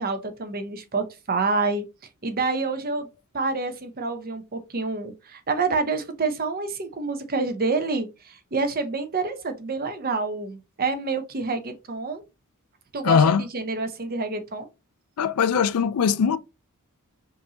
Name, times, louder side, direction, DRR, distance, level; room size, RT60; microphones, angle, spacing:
voice 1, 0.0-1.8 2.2-3.1 3.3-12.2 12.9-14.7, right 3 dB, 45° right, 0.8 m, -28 dB
voice 2, 13.0-13.4 15.2-16.4, left 6 dB, 85° left, 0.4 m, -20 dB
5.1 x 2.7 x 2.8 m
head